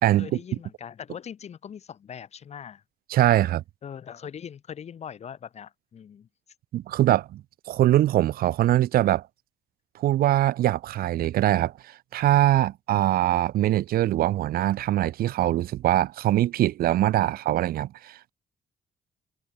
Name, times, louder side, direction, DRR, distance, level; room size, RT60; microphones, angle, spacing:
voice 1, 0.2-2.8 3.8-6.3, left 8 dB, 45° left, 2.7 m, -41 dB
voice 2, 3.1-3.6 6.7-7.4 7.7-9.2 9.9-18.3, right 14 dB, 85° right, 1.4 m, -22 dB
cardioid pair, 145°, 15 cm